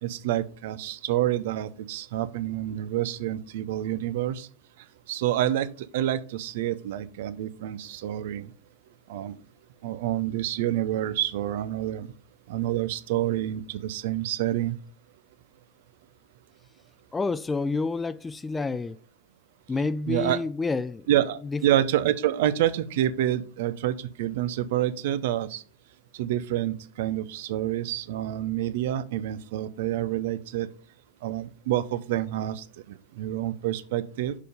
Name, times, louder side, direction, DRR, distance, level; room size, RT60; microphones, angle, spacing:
voice 1, 0.0-4.5 5.1-8.5 9.1-9.4 9.8-12.1 12.5-14.8 20.1-20.4 21.1-25.6 26.1-30.7 31.2-34.4, right 12 dB, 55° right, 0.6 m, -28 dB
voice 2, 17.1-19.0 19.7-21.1 21.3-21.6, left 3 dB, 10° left, 0.3 m, -29 dB
6.6 x 5.3 x 5.0 m
figure-of-eight pair, 90°, 0 cm